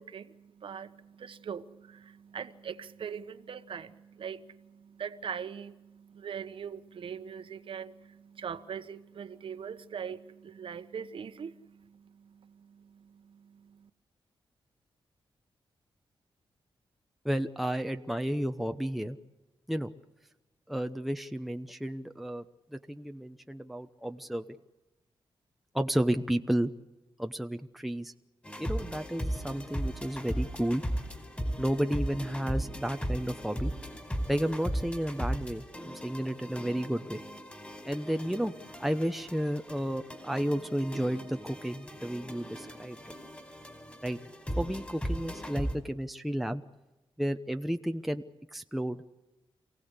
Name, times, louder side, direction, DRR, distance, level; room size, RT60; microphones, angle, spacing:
voice 1, 0.0-13.9, right 7 dB, 65° right, 11 dB, 1.3 m, -42 dB
voice 2, 17.2-19.2 19.7-19.9 20.7-22.4 22.7-24.4 25.7-26.7 27.2-28.1 28.6-30.8 31.6-33.7 34.3-37.2 37.8-38.5 38.8-43.2 44.0-44.2 44.6-46.6 47.2-48.2 48.5-49.0, right 1 dB, ahead, 7 dB, 0.9 m, -32 dB
sound 1, 28.4-45.8, equal, 15° left, 4.8 m, -37 dB
27.5 x 17.0 x 8.2 m, 1.0 s
cardioid pair, 95°, 9 cm